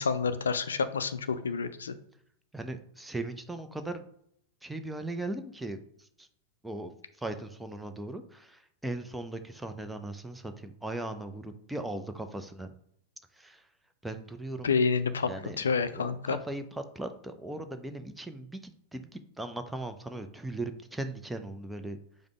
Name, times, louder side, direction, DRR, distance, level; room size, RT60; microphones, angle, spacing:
voice 1, 0.0-1.9 14.6-15.3 15.6-16.4, left 5 dB, 70° left, 11 dB, 0.3 m, -28 dB
voice 2, 2.5-4.0 4.6-6.3 6.6-6.9 7.2-12.7 13.4-13.6 14.0-14.7 15.3-15.6 15.9-22.0, right 2 dB, 5° right, 8 dB, 0.4 m, -38 dB
5.0 x 2.1 x 4.7 m, 0.71 s
figure-of-eight pair, 90°, 0 cm